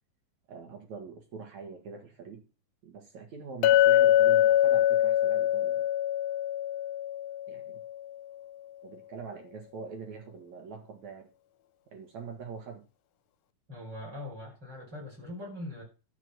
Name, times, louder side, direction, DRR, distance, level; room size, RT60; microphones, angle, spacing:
voice 1, 0.5-2.4 2.8-5.9 7.5-7.8 8.8-11.3 11.9-12.9, right 5 dB, 60° right, 4 dB, 2.9 m, -44 dB
Chink clink, 3.6-7.9, left 12 dB, 75° left, 2.0 m, -24 dB
voice 2, 13.7-15.8, left 1 dB, 30° right, -3 dB, 6.2 m, -41 dB
12.5 x 5.1 x 6.3 m, 0.33 s
omnidirectional pair, 3.9 m